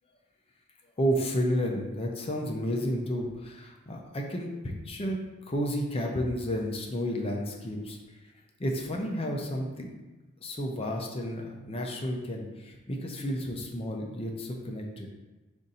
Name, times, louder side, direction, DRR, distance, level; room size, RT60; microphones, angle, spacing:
voice 1, 1.0-5.2 5.5-8.0 8.6-9.9 10.4-15.1, equal, 25° left, 1 dB, 0.5 m, -31 dB
5.0 x 2.6 x 4.1 m, 1.1 s
head